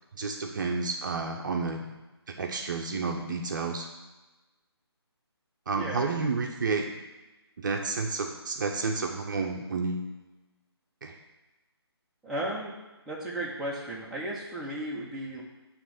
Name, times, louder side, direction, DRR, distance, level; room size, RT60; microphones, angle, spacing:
voice 1, 0.2-1.8 2.4-3.9 5.7-6.9 7.6-10.1 11.0-11.1, right 4 dB, 45° right, 2 dB, 0.9 m, -30 dB
voice 2, 5.7-6.4 12.2-12.7 13.1-15.4, right 1 dB, ahead, -8 dB, 1.1 m, -35 dB
9.4 x 3.4 x 6.6 m, 1.1 s
figure-of-eight pair, 145°, 14 cm